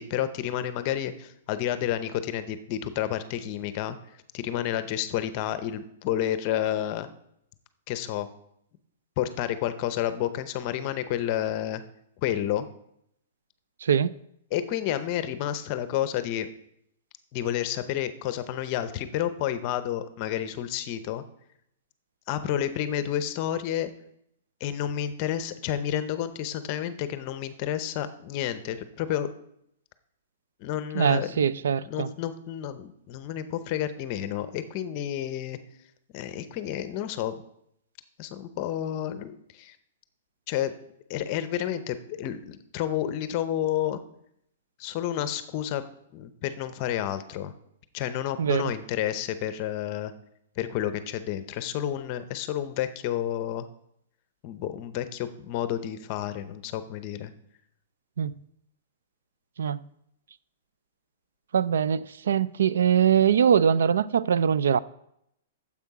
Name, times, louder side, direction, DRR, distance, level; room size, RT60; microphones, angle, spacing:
voice 1, 0.0-4.0 4.3-7.1 7.9-8.3 9.2-11.8 12.2-12.7 14.5-16.5 17.3-21.2 22.3-23.9 24.6-29.3 30.6-31.5 31.9-35.6 36.1-37.3 38.2-39.8 40.5-40.7 41.1-44.0 44.8-45.8 46.1-47.5 47.9-50.1 50.6-53.7 54.4-57.3, left 11 dB, 30° left, 0.6 m, -30 dB
voice 2, 13.8-14.1 30.9-32.1 48.4-48.7 58.2-58.3 59.6-59.8 61.5-64.8, right 8 dB, 85° right, 0.4 m, -22 dB
9.5 x 7.4 x 4.8 m
hypercardioid pair, 170°, 0 cm